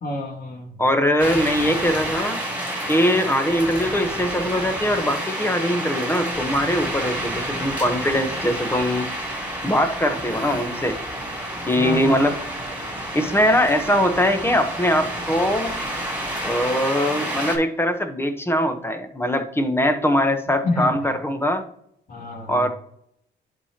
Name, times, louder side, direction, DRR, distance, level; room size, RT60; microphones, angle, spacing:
voice 1, 0.0-0.8 11.7-12.3 20.6-21.1 22.1-22.6, left 1 dB, 45° left, 0 dB, 2.4 m, -28 dB
voice 2, 0.8-2.4 2.9-9.0 9.6-11.0 11.7-12.4 13.1-15.7 16.4-21.6 22.5-22.7, equal, 10° left, 7 dB, 1.1 m, -21 dB
sound 1, 1.2-17.6, right 1 dB, 10° right, 2.9 m, -29 dB
10.5 x 4.5 x 2.9 m, 0.70 s
cardioid pair, 90°, 20 cm